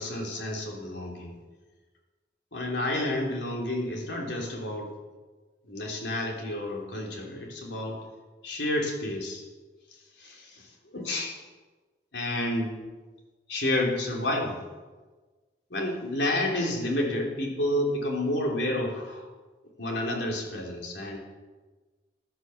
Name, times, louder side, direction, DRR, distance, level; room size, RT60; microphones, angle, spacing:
voice 1, 0.0-1.3 2.5-4.9 5.7-8.0 8.4-9.4 10.2-10.7 10.9-11.4 12.1-12.8 13.5-14.6 15.7-19.2 19.8-21.2, left 1 dB, 80° left, 0 dB, 3.6 m, -30 dB
15.0 x 11.5 x 7.3 m, 1.3 s
head